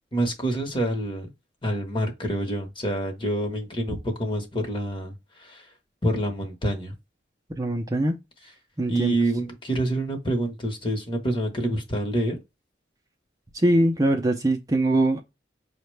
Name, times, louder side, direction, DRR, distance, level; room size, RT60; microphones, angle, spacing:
voice 1, 0.1-1.3 1.6-5.7 6.0-6.9 8.9-12.4, right 1 dB, 30° left, 1.0 m, -27 dB
voice 2, 7.6-8.2 8.8-9.1 13.5-15.2, right 1 dB, 20° right, 0.5 m, -22 dB
5.6 x 2.2 x 3.1 m
head